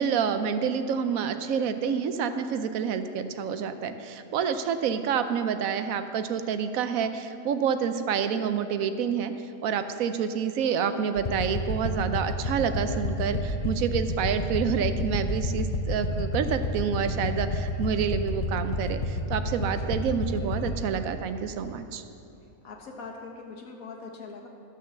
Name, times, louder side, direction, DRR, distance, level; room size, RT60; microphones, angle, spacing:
voice 1, 0.0-9.3 9.6-22.0, right 7 dB, 75° right, 10 dB, 1.0 m, -28 dB
sound 1, 11.2-20.8, left 1 dB, 40° left, 0.5 m, -30 dB
voice 2, 22.6-24.5, left 4 dB, 75° left, 1 dB, 1.7 m, -42 dB
12.5 x 6.4 x 6.8 m, 2.8 s
omnidirectional pair, 1.5 m